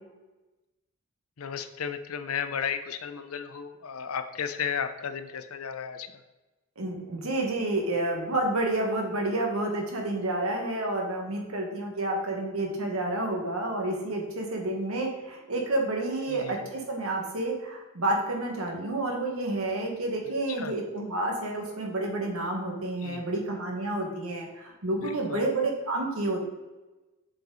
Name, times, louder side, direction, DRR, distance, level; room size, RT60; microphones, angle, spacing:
voice 1, 1.4-6.1 16.3-16.7 20.3-20.7 23.0-23.3 25.0-25.5, left 7 dB, 70° left, 10 dB, 0.6 m, -34 dB
voice 2, 6.8-26.4, right 2 dB, 70° right, 1 dB, 1.6 m, -29 dB
7.7 x 4.9 x 4.0 m, 1.1 s
head